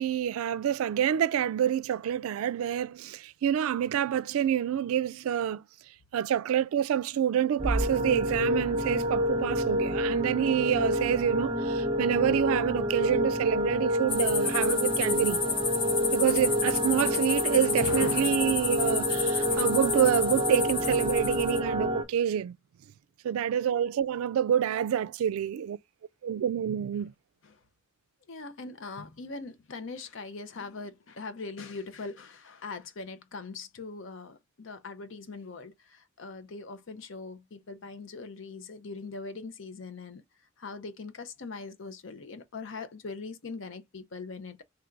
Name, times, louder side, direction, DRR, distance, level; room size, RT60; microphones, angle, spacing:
voice 1, 0.0-5.6 6.1-15.4 16.1-22.6 23.2-25.8 26.2-27.1, right 9 dB, 90° right, 0.3 m, -27 dB
sound 1, 7.6-22.0, equal, 25° right, 0.7 m, -28 dB
sound 2, 14.1-21.6, left 6 dB, 25° left, 0.4 m, -31 dB
voice 2, 17.8-18.5 27.4-27.6 28.3-40.2 40.6-44.6, left 4 dB, 65° left, 0.6 m, -41 dB
3.4 x 2.5 x 4.5 m
head